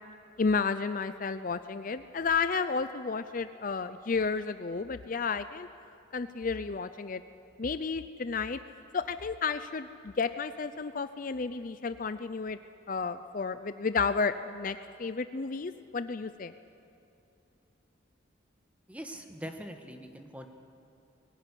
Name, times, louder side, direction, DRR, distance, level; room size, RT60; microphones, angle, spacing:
voice 1, 0.4-5.7 6.1-7.2 7.6-8.6 8.9-12.6 12.9-16.5, left 5 dB, 40° left, 11 dB, 0.5 m, -32 dB
voice 2, 18.9-20.5, equal, 5° right, 5 dB, 1.4 m, -42 dB
22.0 x 16.0 x 9.9 m, 2.8 s
head